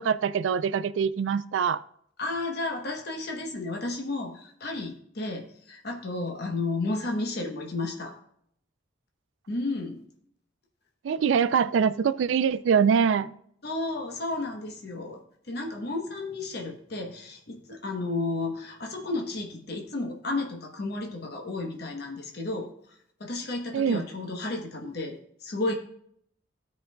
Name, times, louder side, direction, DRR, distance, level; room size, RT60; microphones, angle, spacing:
voice 1, 0.0-1.8 11.0-13.3 23.7-24.0, right 6 dB, 80° right, 15 dB, 0.3 m, -24 dB
voice 2, 2.2-8.1 9.5-10.0 13.6-25.7, left 2 dB, 55° left, 1 dB, 1.0 m, -33 dB
15.5 x 5.2 x 2.2 m, 0.68 s
head